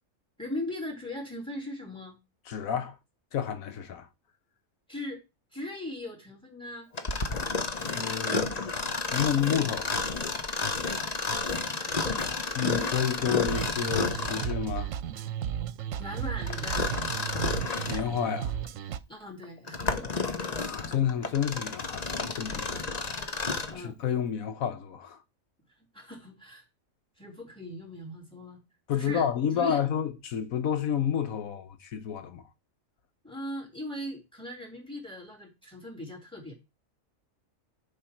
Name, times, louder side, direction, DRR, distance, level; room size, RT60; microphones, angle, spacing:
voice 1, 0.4-2.2 4.9-5.2 5.5-6.9 11.2-12.0 16.0-16.9 19.1-20.2 22.8-23.0 23.7-24.0 25.9-26.6 27.2-28.6 28.9-29.8 33.2-36.5, left 1 dB, 5° left, 3.4 m, -39 dB
voice 2, 2.5-3.0 3.3-4.1 7.9-9.9 12.6-14.9 17.9-18.6 20.6-23.0 23.7-25.2 28.9-32.4, left 8 dB, 85° left, 1.3 m, -30 dB
Mechanisms, 6.9-14.6 16.5-18.1 18.6-18.7 19.4-23.8, left 4 dB, 35° left, 0.9 m, -31 dB
sound 1, 13.5-19.0, right 9 dB, 75° right, 1.0 m, -34 dB
10.5 x 5.4 x 4.5 m
omnidirectional pair, 1.4 m